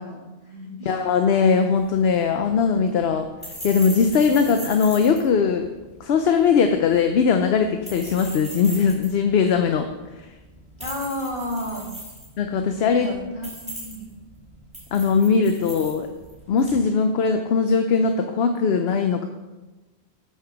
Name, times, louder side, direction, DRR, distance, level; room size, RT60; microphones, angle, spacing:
voice 1, 0.0-1.0 10.8-11.9 12.9-14.1, left 1 dB, 50° left, -2 dB, 2.2 m, -32 dB
voice 2, 0.9-3.3 3.6-5.7 6.0-9.9 12.4-13.1 14.9-16.1 16.5-19.2, left 5 dB, 70° left, 6 dB, 0.9 m, -20 dB
sound 1, 1.8-16.9, equal, 5° right, 3.7 m, -40 dB
8.6 x 5.9 x 6.1 m, 1.1 s
omnidirectional pair, 1.1 m